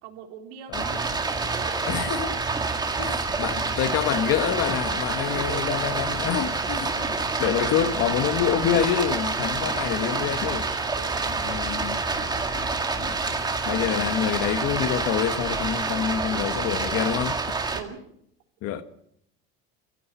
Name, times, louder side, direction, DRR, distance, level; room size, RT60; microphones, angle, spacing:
voice 1, 0.0-1.1 1.5-2.0 5.3-6.1 9.7-10.1 11.0-11.3 17.7-18.0, right 8 dB, 85° right, 3.7 m, -40 dB
Stream, 0.7-17.8, right 4 dB, 15° right, 2.0 m, -27 dB
voice 2, 1.8-2.3 3.0-7.0 7.4-10.7 11.4-12.0 13.6-17.4 18.6-18.8, left 10 dB, 55° left, 1.5 m, -26 dB
sound 1, 3.5-15.3, left 8 dB, 70° left, 2.3 m, -46 dB
24.0 x 15.5 x 6.9 m
cardioid pair, 145°, 29 cm